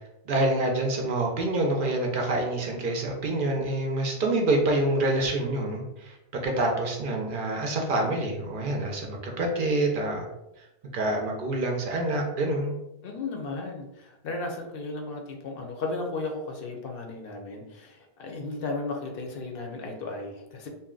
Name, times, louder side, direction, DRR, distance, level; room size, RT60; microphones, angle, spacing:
voice 1, 0.3-10.3 10.9-12.7, right 2 dB, 60° right, 1 dB, 0.7 m, -27 dB
voice 2, 13.0-20.7, left 3 dB, 65° left, 2 dB, 0.7 m, -35 dB
2.6 x 2.1 x 3.6 m, 0.91 s
omnidirectional pair, 1.1 m